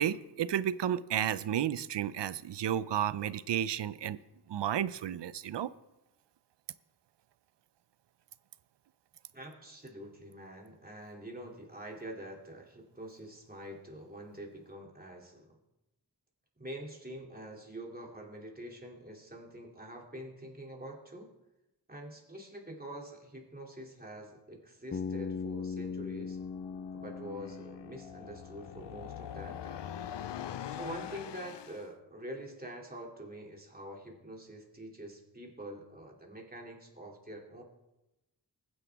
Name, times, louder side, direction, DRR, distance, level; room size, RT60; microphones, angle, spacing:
voice 1, 0.0-4.2 4.5-5.7, right 10 dB, 85° right, 17 dB, 0.5 m, -32 dB
voice 2, 9.3-15.5 16.6-21.3 21.9-26.4 26.9-29.9 30.7-37.6, right 1 dB, 20° right, 0 dB, 2.7 m, -46 dB
Bass guitar, 24.9-28.9, left 5 dB, 30° left, 0.4 m, -39 dB
sound 1, 26.4-31.9, left 9 dB, 80° left, 0.6 m, -43 dB
20.5 x 9.6 x 3.5 m, 0.96 s
wide cardioid pair, 75°, 41 cm